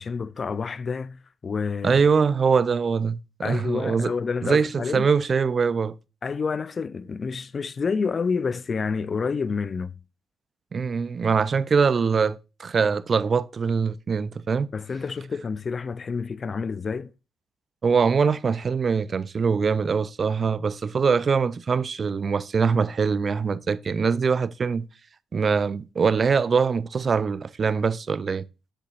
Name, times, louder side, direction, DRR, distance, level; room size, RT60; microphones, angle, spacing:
voice 1, 0.0-2.0 3.4-5.1 6.2-9.9 14.7-17.1, left 5 dB, 40° left, 0.5 m, -29 dB
voice 2, 1.8-3.2 3.4-4.1 4.4-6.0 10.7-14.7 17.8-24.9 25.3-28.4, right 5 dB, 40° right, 0.4 m, -23 dB
7.5 x 6.9 x 2.5 m
cardioid pair, 90°, 0 cm